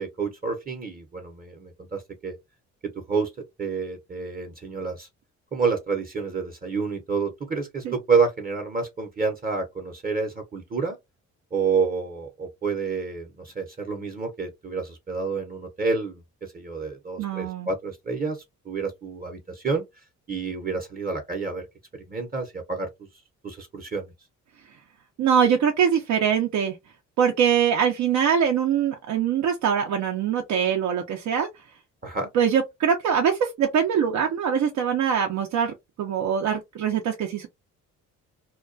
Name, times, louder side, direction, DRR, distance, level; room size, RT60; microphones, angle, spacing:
voice 1, 0.0-2.3 2.8-3.3 3.6-5.1 5.5-11.0 11.5-18.4 18.6-19.8 20.3-21.7 21.9-22.9 23.4-24.1 32.0-32.3, right 5 dB, 30° right, 0.7 m, -28 dB
voice 2, 17.2-17.7 25.2-26.8 27.2-31.5 32.3-37.5, right 7 dB, 70° right, 0.5 m, -23 dB
2.2 x 2.2 x 2.5 m
cardioid pair, 90°, 30 cm